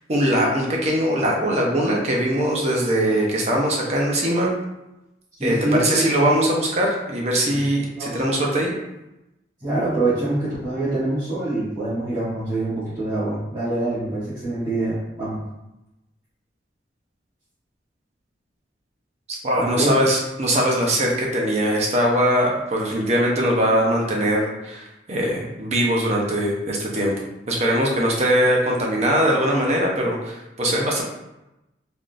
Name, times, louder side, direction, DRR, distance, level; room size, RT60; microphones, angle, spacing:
voice 1, 0.1-4.5 5.4-8.7 19.3-27.1 27.5-31.0, equal, 35° right, -1 dB, 0.6 m, -21 dB
voice 2, 5.4-6.2 7.5-7.6 8.0-8.1 9.6-15.4 19.5-19.9, right 2 dB, 20° right, -15 dB, 1.1 m, -25 dB
3.4 x 2.4 x 2.5 m, 0.94 s
head